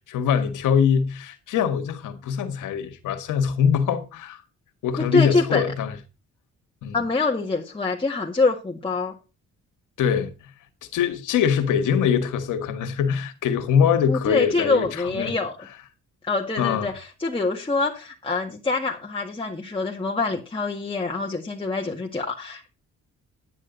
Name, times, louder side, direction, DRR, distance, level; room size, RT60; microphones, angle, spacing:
voice 1, 0.1-4.4 4.8-5.9 6.8-7.0 10.0-10.3 10.9-15.3 16.6-16.9, left 7 dB, 85° left, 1.8 m, -23 dB
voice 2, 5.0-5.6 6.9-9.1 14.1-15.6 16.2-22.7, left 3 dB, 15° left, 1.9 m, -25 dB
10.0 x 9.9 x 4.0 m
cardioid pair, 90°, 30 cm